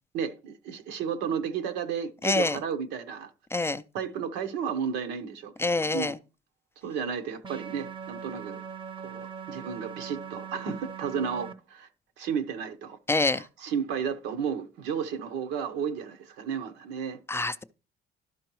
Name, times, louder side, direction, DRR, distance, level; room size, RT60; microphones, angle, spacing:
voice 1, 0.1-3.3 3.9-6.1 6.8-8.6 9.0-11.9 12.2-13.0 13.3-17.2, right 7 dB, 85° right, 0.9 m, -33 dB
voice 2, 2.2-2.6 3.5-3.8 5.6-6.2 13.1-13.5 17.3-17.6, left 2 dB, 15° left, 0.3 m, -26 dB
sound 1, 7.4-11.5, right 7 dB, 30° right, 0.6 m, -40 dB
12.5 x 4.5 x 3.1 m
cardioid pair, 110°, 17 cm